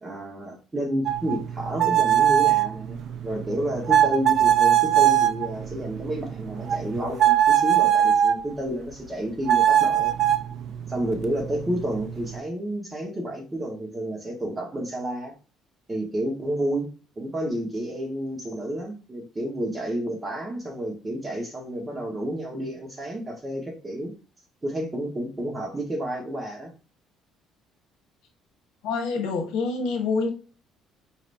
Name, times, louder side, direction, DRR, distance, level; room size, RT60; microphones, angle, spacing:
voice 1, 0.0-3.0 3.2-10.1 10.9-15.4 15.9-16.9 17.2-24.1 24.6-26.7, right 1 dB, 15° right, 1.2 m, -30 dB
sound 1, 1.1-8.4 9.5-12.4, right 11 dB, 50° right, 0.4 m, -22 dB
voice 2, 28.8-30.3, left 4 dB, 80° left, 1.3 m, -26 dB
4.9 x 3.3 x 2.6 m
cardioid pair, 150°, 0 cm